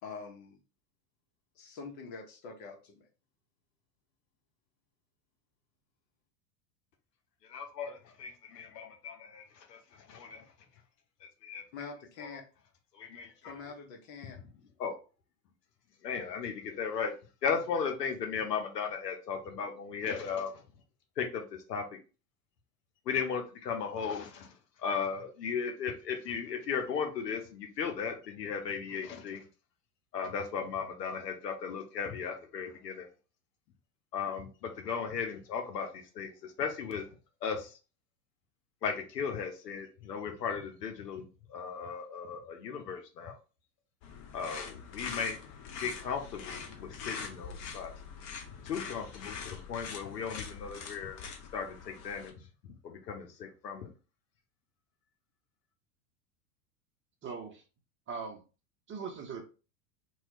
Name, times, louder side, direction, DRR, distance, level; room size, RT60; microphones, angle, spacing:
voice 1, 0.0-0.6 1.6-3.1 11.7-12.4 13.4-14.4, left 5 dB, 60° left, 1.1 m, -45 dB
voice 2, 7.5-9.8 10.1-10.4 11.4-11.6 12.2-12.4 12.9-13.5 14.3-14.4 14.8-14.9 16.0-17.1 17.4-20.5 21.2-21.4 21.7-21.8 23.1-24.5 24.8-29.4 30.1-33.1 34.1-37.0 37.4-37.7 38.8-43.3 44.3-45.4 45.8-47.9 48.6-51.2 51.5-52.3 52.6-53.9, left 6 dB, 85° left, 0.9 m, -36 dB
sound 1, 44.0-52.3, left 6 dB, 40° left, 0.7 m, -44 dB
voice 3, 57.2-57.6 58.1-58.4 58.9-59.4, right 5 dB, 25° right, 0.7 m, -40 dB
3.0 x 2.3 x 3.0 m
hypercardioid pair, 95°, 48 cm